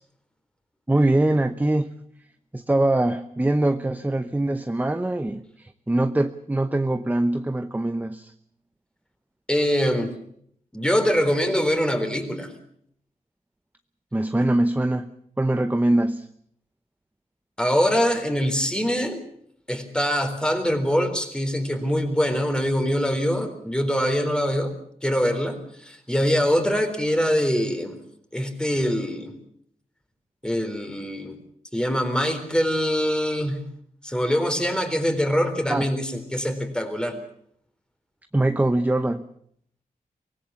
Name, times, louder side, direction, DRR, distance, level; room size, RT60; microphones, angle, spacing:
voice 1, 0.9-2.0 2.5-8.3 14.1-15.1 15.4-16.3 35.7-35.9 38.3-39.2, right 1 dB, 10° right, 10 dB, 0.9 m, -23 dB
voice 2, 9.5-10.1 10.7-12.5 17.6-19.2 19.7-24.7 25.0-28.0 28.3-29.3 30.4-31.4 31.7-33.6 34.0-37.2, equal, 5° left, 7 dB, 4.0 m, -23 dB
24.5 x 18.5 x 7.1 m, 0.66 s
wide cardioid pair, 100°, 14 cm